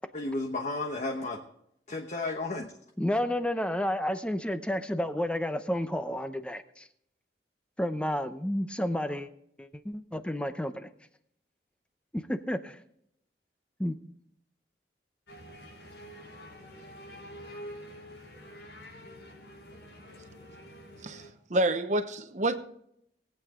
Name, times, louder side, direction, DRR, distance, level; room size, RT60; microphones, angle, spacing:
voice 1, 0.1-1.4 1.9-2.7, left 2 dB, 40° left, 1.1 m, -33 dB
voice 2, 3.0-6.9 7.8-9.3 9.6-10.9 12.1-12.8 13.8-14.0, left 1 dB, 5° left, 0.7 m, -31 dB
sound 1, 15.3-21.3, equal, 85° left, 4.7 m, -47 dB
voice 3, 21.5-22.6, right 1 dB, 45° right, 0.9 m, -27 dB
20.0 x 8.8 x 3.8 m
head